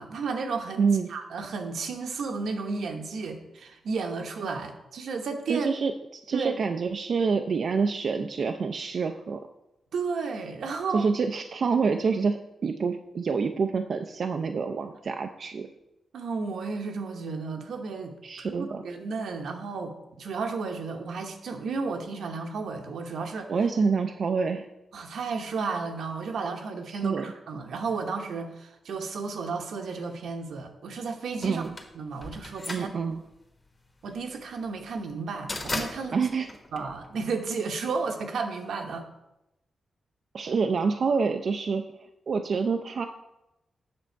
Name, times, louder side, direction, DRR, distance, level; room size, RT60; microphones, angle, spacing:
voice 1, 0.0-5.7 6.3-6.6 9.9-11.1 16.1-23.5 24.9-31.6 31.9-32.9 34.0-36.2 36.7-39.0, right 4 dB, 80° right, 4 dB, 1.0 m, -33 dB
voice 2, 0.8-1.1 5.5-9.4 10.9-15.7 18.2-18.8 23.5-24.7 26.9-27.3 31.4-31.8 32.7-33.2 36.1-36.5 40.3-41.8 42.3-43.1, right 5 dB, 50° right, 6 dB, 0.4 m, -27 dB
sound 1, 31.4-37.6, left 2 dB, 25° left, 1.2 m, -37 dB
7.6 x 6.2 x 4.5 m, 0.92 s
wide cardioid pair, 140°, 0 cm